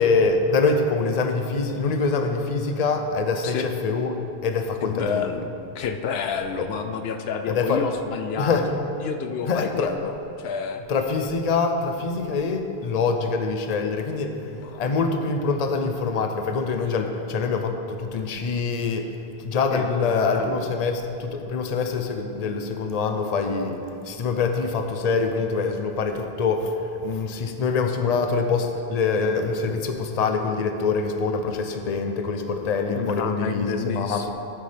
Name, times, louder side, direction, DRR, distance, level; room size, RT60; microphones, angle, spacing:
voice 1, 0.0-5.3 7.5-7.8 8.4-8.7 9.5-10.0 10.9-14.4 14.8-19.1 19.4-23.8 24.0-26.8 27.0-34.3, left 4 dB, 45° left, 5 dB, 0.7 m, -24 dB
voice 2, 4.8-10.8 14.5-14.8 19.7-20.7 32.9-34.3, left 6 dB, 80° left, 6 dB, 0.8 m, -30 dB
11.0 x 9.8 x 3.4 m, 2.7 s
omnidirectional pair, 1.0 m